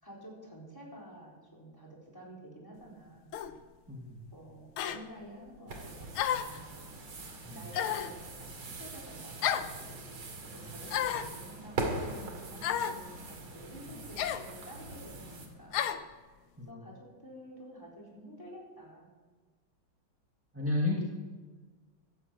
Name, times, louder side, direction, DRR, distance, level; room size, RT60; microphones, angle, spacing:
voice 1, 0.0-3.3 4.3-6.7 7.5-15.9 16.2-16.4 16.7-19.1, equal, 10° left, -3 dB, 4.2 m, -50 dB
sound 1, 3.3-3.5 4.8-5.0 6.1-6.6 7.7-8.2 9.4-9.7 10.9-11.3 12.6-13.0 14.2-14.5 15.7-16.0, left 10 dB, 80° left, 1.6 m, -31 dB
voice 2, 3.9-4.2 7.4-7.7 16.6-16.8 20.5-21.0, left 2 dB, 5° right, -1 dB, 1.4 m, -32 dB
sound 2, 5.7-15.5, right 2 dB, 80° right, 3.2 m, -41 dB
13.0 x 11.5 x 8.0 m, 1.4 s
omnidirectional pair, 2.3 m